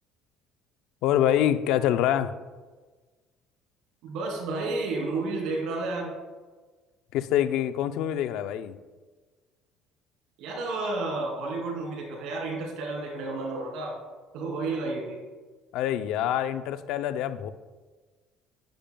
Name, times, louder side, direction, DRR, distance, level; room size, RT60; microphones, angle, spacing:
voice 1, 1.0-2.3 7.1-8.8 15.7-17.5, left 11 dB, 75° left, 11 dB, 0.5 m, -25 dB
voice 2, 4.0-6.1 10.4-14.0 14.3-15.2, right 3 dB, 75° right, 0 dB, 2.8 m, -31 dB
10.5 x 10.5 x 2.3 m, 1.3 s
cardioid pair, 125°, 0 cm